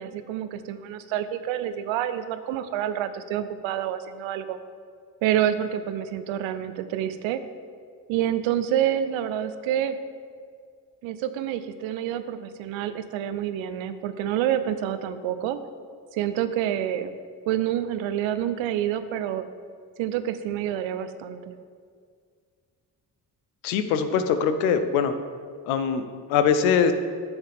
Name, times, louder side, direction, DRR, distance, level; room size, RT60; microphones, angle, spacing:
voice 1, 0.0-4.6 5.2-7.4 8.1-10.0 11.0-15.6 16.1-17.1 17.5-19.4 20.0-21.6, right 10 dB, 80° right, 11 dB, 0.7 m, -28 dB
voice 2, 23.6-25.1 25.6-26.9, left 7 dB, 85° left, 9 dB, 0.7 m, -22 dB
10.0 x 7.1 x 3.5 m, 2.1 s
hypercardioid pair, 45°, 46 cm